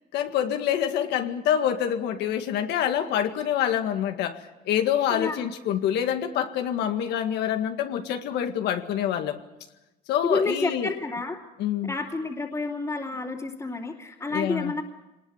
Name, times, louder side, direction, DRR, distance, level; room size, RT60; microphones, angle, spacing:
voice 1, 0.1-9.4 10.1-10.9 11.6-11.9 14.3-14.7, left 10 dB, 85° left, 6 dB, 1.9 m, -26 dB
voice 2, 5.1-5.5 10.2-11.4 11.9-14.8, left 3 dB, 20° left, -3 dB, 2.9 m, -29 dB
24.0 x 20.0 x 7.2 m, 1.0 s
cardioid pair, 110°, 17 cm